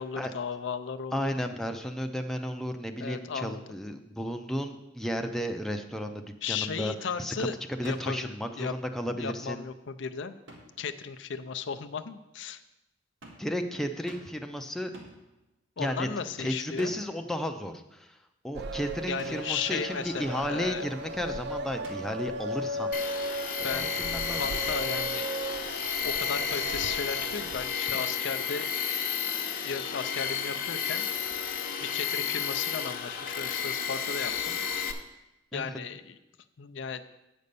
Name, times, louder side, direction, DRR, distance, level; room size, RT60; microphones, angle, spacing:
voice 1, 0.0-1.3 3.0-3.6 6.4-7.6 7.8-8.7 9.1-10.3 10.8-12.6 15.8-16.9 19.1-20.8 23.6-24.0 24.4-25.3 26.0-28.7 29.6-31.1 31.8-34.6 35.5-36.2 36.6-37.0, left 6 dB, 70° left, 10 dB, 0.5 m, -35 dB
voice 2, 1.1-6.9 7.2-9.6 13.4-14.9 15.8-16.1 16.4-18.2 18.4-22.9 23.6-24.5 27.9-28.0 35.5-35.8, equal, ahead, 4 dB, 0.5 m, -33 dB
sound 1, 7.8-8.3 10.5-10.9 13.2-13.6 14.1-14.5 14.9-15.3 16.8-17.3 19.2-19.6 21.8-22.4, right 1 dB, 85° right, 1.6 m, -49 dB
sound 2, 18.5-27.6, right 1 dB, 60° right, 0.4 m, -36 dB
Tools, 22.9-34.9, left 7 dB, 50° left, 0.8 m, -32 dB
8.5 x 5.3 x 6.8 m, 0.95 s
head